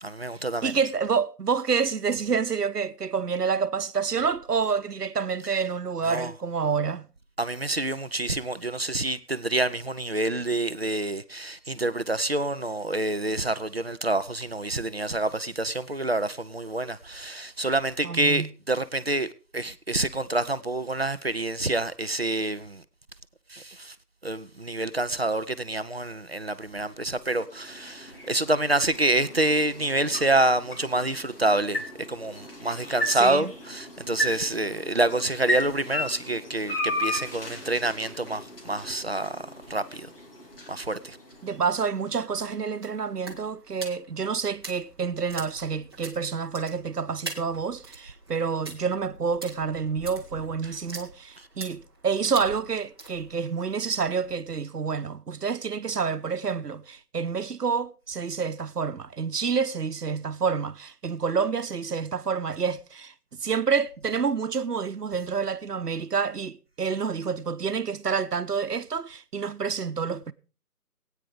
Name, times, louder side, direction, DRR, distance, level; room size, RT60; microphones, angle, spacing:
voice 1, 0.0-0.7 6.0-6.3 7.4-22.8 23.5-24.0 24.2-40.1 40.7-41.2, right 2 dB, 40° right, 0.6 m, -27 dB
voice 2, 0.6-7.1 18.0-18.5 33.1-33.5 41.4-63.1 63.4-70.3, right 6 dB, 80° right, 1.0 m, -28 dB
sound 1, 26.7-42.8, left 1 dB, 35° left, 2.7 m, -36 dB
sound 2, 41.3-54.3, right 3 dB, 15° right, 1.1 m, -44 dB
17.5 x 9.3 x 4.9 m
figure-of-eight pair, 165°, 47 cm